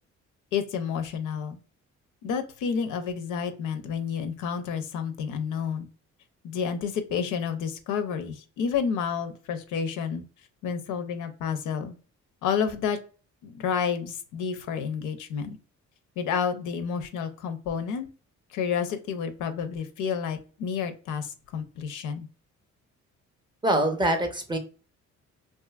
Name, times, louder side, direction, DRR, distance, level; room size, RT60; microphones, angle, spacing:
voice 1, 0.5-1.6 2.2-5.9 6.4-10.2 10.6-11.9 12.4-13.0 13.4-15.6 16.2-18.1 18.5-22.3, left 7 dB, 85° left, 9 dB, 0.5 m, -30 dB
voice 2, 23.6-24.6, right 1 dB, 15° right, 5 dB, 0.5 m, -24 dB
2.6 x 2.5 x 2.3 m, 0.37 s
cardioid pair, 90°, 30 cm